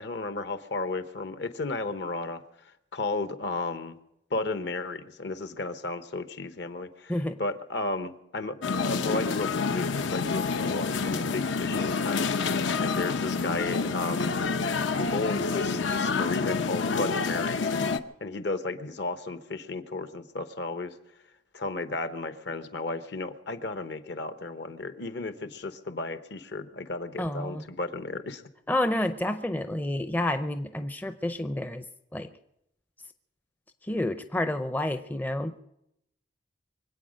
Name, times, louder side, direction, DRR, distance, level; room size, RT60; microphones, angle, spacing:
voice 1, 0.0-2.4 2.9-4.0 4.3-7.1 7.4-8.6 8.8-12.3 12.8-14.4 14.9-17.7 18.2-20.9 21.5-28.4, left 3 dB, 60° left, 10 dB, 1.0 m, -33 dB
sound 1, 8.6-18.0, left 4 dB, 80° left, 0.7 m, -28 dB
voice 2, 27.2-27.6 28.7-31.8 32.1-32.3 33.8-35.5, left 1 dB, 10° left, 8 dB, 0.5 m, -29 dB
24.0 x 8.8 x 6.4 m, 0.81 s
head